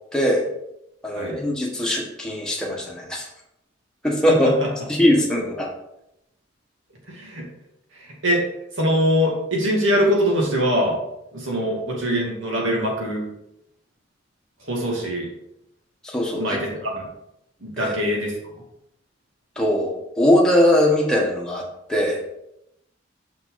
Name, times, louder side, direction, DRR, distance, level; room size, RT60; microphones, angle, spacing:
voice 1, 0.1-0.4 1.0-3.3 4.0-4.5 4.9-5.7 11.5-11.7 16.1-16.6 17.8-17.9 19.6-21.6 21.9-22.2, left 1 dB, 5° left, -2 dB, 1.3 m, -20 dB
voice 2, 7.1-7.4 8.0-8.4 8.8-11.0 11.3-13.2 14.6-15.3 16.3-17.0 17.6-18.3, equal, 70° right, -2 dB, 2.3 m, -23 dB
6.2 x 5.9 x 4.0 m, 0.83 s
head